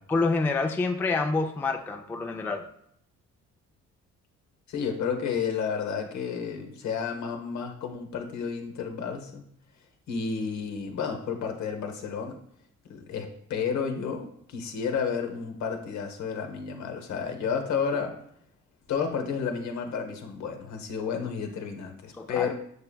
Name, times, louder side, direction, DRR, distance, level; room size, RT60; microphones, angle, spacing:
voice 1, 0.1-2.7 22.2-22.5, left 3 dB, 5° left, 4 dB, 0.3 m, -27 dB
voice 2, 4.7-9.5 10.1-12.4 12.8-18.1 18.9-22.5, left 6 dB, 70° left, 5 dB, 0.8 m, -31 dB
6.6 x 3.4 x 2.2 m, 0.72 s
cardioid pair, 90°, 30 cm